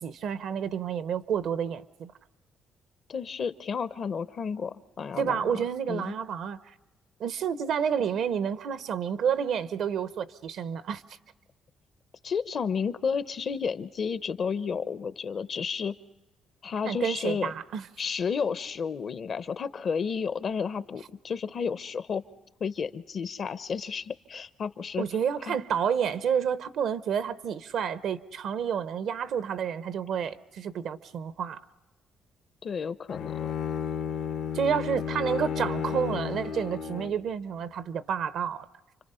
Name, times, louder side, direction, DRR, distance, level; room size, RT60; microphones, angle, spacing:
voice 1, 0.0-2.1 5.2-6.7 7.2-11.0 16.8-17.9 25.0-31.6 34.5-38.7, right 7 dB, 75° right, 0.8 m, -30 dB
voice 2, 3.1-6.1 12.2-15.9 16.6-17.5 18.0-22.2 22.6-25.0 25.5-25.6 32.6-33.5, left 6 dB, 50° left, 0.8 m, -32 dB
Bowed string instrument, 33.1-37.3, left 7 dB, 75° left, 1.0 m, -33 dB
29.0 x 25.0 x 5.6 m
cardioid pair, 90°, 0 cm